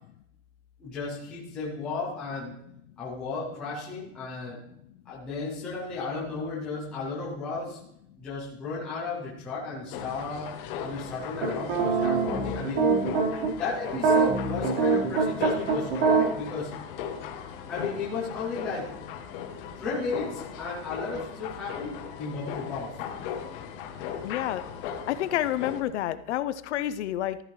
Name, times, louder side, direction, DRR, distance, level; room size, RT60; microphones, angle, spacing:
voice 1, 0.8-2.5 3.0-4.6 5.1-7.8 8.2-12.9 13.5-16.7 17.7-18.9 19.8-23.0, left 4 dB, 5° left, -7 dB, 0.3 m, -34 dB
sound 1, 9.9-25.8, left 8 dB, 40° left, 1.2 m, -38 dB
sound 2, 11.4-13.5 13.9-16.2, right 4 dB, 70° right, 4.1 m, -23 dB
voice 2, 24.2-27.4, left 12 dB, 55° left, 13 dB, 0.6 m, -29 dB
14.0 x 11.0 x 3.1 m, 0.74 s
supercardioid pair, 175°, 42 cm